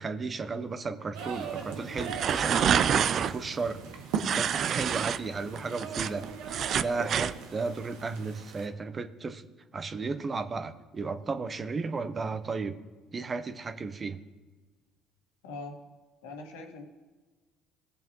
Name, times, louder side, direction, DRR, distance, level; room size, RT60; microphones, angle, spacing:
voice 1, 0.0-2.8 3.2-3.8 4.3-6.2 6.8-9.4 9.7-12.7 13.1-14.2, right 4 dB, 35° right, 10 dB, 0.9 m, -34 dB
sound 1, 1.1-8.7, right 6 dB, 75° right, 1.4 m, -39 dB
sound 2, 2.0-3.3 4.1-5.2 5.6-7.3, right 8 dB, 55° right, 0.4 m, -27 dB
voice 2, 15.4-15.8 16.2-16.8, left 3 dB, 85° left, 1 dB, 1.9 m, -42 dB
18.5 x 6.9 x 3.1 m, 1.3 s
hypercardioid pair, 70°, 0 cm